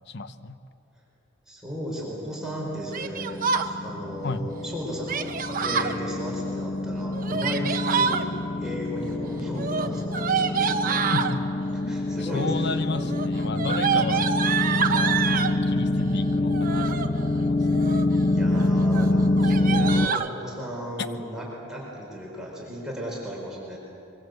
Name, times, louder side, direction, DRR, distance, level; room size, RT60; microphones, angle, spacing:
voice 1, 0.1-0.6 4.2-4.5 11.1-11.6 11.8-14.3 14.9-18.1, left 3 dB, 55° left, 11 dB, 1.0 m, -33 dB
voice 2, 1.5-8.3 8.6-11.0 11.9-12.7 13.1-13.2 18.2-23.8, equal, 5° right, -4 dB, 4.9 m, -35 dB
sound 1, 2.2-2.3 2.5-20.1, left 2 dB, 25° left, 0.6 m, -26 dB
Yell, 2.9-3.7 5.1-6.0 7.1-8.2 9.5-11.3 12.2-12.6 12.9-15.6 16.5-17.1 17.6-18.2 18.5-18.7 18.9-19.1 19.4-20.3, right 6 dB, 40° right, 1.0 m, -27 dB
24.0 x 23.5 x 8.0 m, 2.7 s
head